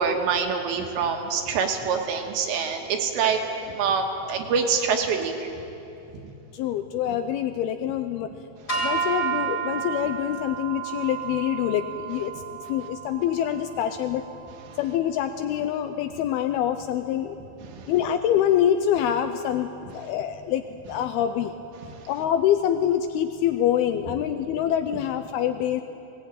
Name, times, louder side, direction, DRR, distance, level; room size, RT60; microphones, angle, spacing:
voice 1, 0.0-3.4 3.7-5.5 14.7-14.8 17.6-17.9 21.9-22.0, right 5 dB, 75° right, 3 dB, 3.6 m, -25 dB
voice 2, 6.5-8.3 8.7-14.2 14.8-17.4 17.9-21.5 22.1-25.8, left 10 dB, 85° left, 8 dB, 2.2 m, -25 dB
sound 1, 8.7-15.0, right 6 dB, 20° left, 4.4 m, -32 dB
19.5 x 18.5 x 9.1 m, 2.8 s
omnidirectional pair, 5.2 m